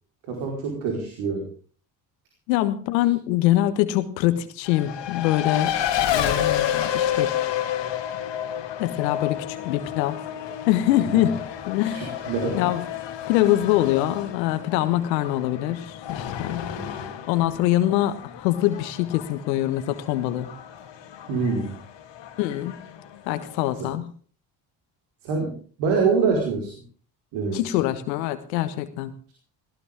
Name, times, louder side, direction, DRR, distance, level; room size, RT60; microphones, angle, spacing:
voice 1, 0.3-1.5 11.1-11.2 11.9-12.7 16.8-17.1 21.3-21.8 23.8-23.9 25.2-26.7 27.3-27.6, right 4 dB, 75° right, 1 dB, 4.8 m, -25 dB
voice 2, 2.5-5.7 6.1-7.3 8.8-10.2 10.7-12.1 12.5-12.8 13.3-16.8 17.3-20.5 22.4-22.8 23.3-24.1 27.5-29.1, left 14 dB, 85° left, 11 dB, 1.5 m, -24 dB
Race car auto racing, 4.6-23.8, left 10 dB, 55° left, 2.7 m, -30 dB
19.0 x 18.0 x 3.6 m, 0.42 s
hypercardioid pair, 60°, 50 cm